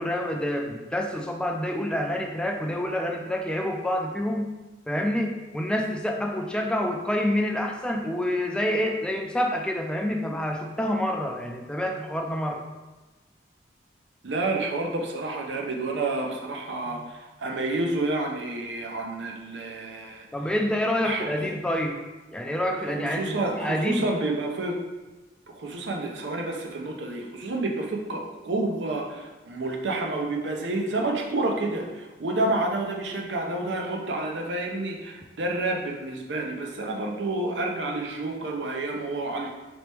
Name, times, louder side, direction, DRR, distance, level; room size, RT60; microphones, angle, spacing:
voice 1, 0.0-4.5 4.9-12.6 20.3-22.0 22.3-24.0, left 1 dB, 5° left, 2 dB, 0.3 m, -27 dB
voice 2, 14.2-20.3 21.0-21.7 22.9-24.8 25.5-39.5, right 2 dB, 80° right, 2 dB, 0.6 m, -29 dB
4.0 x 3.0 x 3.3 m, 1.2 s
head